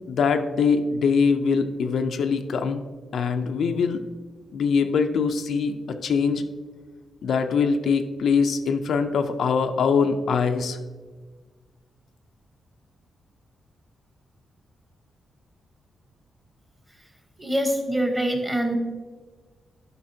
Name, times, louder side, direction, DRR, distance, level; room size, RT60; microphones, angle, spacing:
voice 1, 0.1-2.8 3.1-4.0 4.5-6.5 7.2-10.8, left 5 dB, 65° left, 6 dB, 0.4 m, -23 dB
voice 2, 17.4-18.8, right 1 dB, 10° right, 3 dB, 1.0 m, -24 dB
10.5 x 5.7 x 2.7 m, 1.4 s
wide cardioid pair, 160°, 0 cm